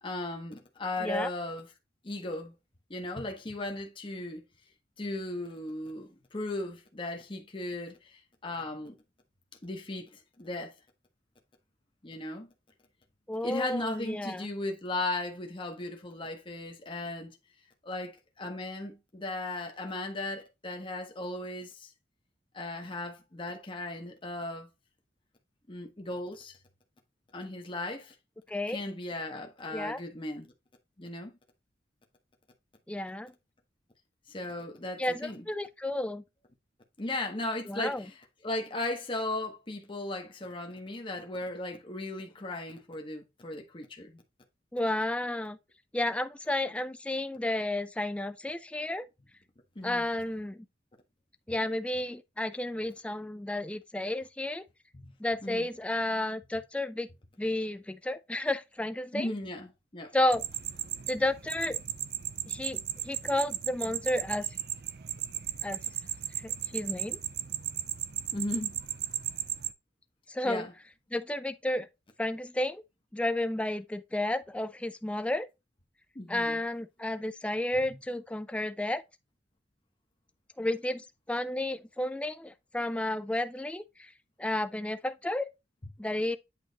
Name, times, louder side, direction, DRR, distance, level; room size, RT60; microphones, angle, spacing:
voice 1, 0.0-1.7 2.0-2.5 2.9-4.4 5.0-9.0 9.6-10.7 12.0-12.5 13.4-17.4 17.8-21.9 22.5-24.7 25.7-26.6 27.3-28.1 28.7-30.5 31.0-31.3 34.3-35.4 37.0-38.2 38.4-44.2 49.7-50.1 54.9-55.1 55.4-55.7 59.1-60.1 68.3-68.8 70.4-70.7 76.1-76.6 77.9-78.0, left 2 dB, 25° left, 0.9 m, -37 dB
voice 2, 13.3-14.5 28.5-28.8 29.7-30.0 32.9-33.3 35.0-36.2 37.7-38.0 44.7-45.6 45.9-49.1 49.8-50.7 51.5-54.6 55.2-57.1 57.4-59.3 60.1-60.4 61.1-61.8 62.5-64.5 65.6-65.8 66.4-67.2 70.3-70.6 71.1-71.9 72.2-72.8 73.1-75.5 76.3-79.0 80.6-84.1 84.4-85.5 86.0-86.4, left 1 dB, 5° left, 0.3 m, -32 dB
sound 1, 60.3-69.7, right 12 dB, 55° right, 0.5 m, -36 dB
8.5 x 3.1 x 3.9 m
head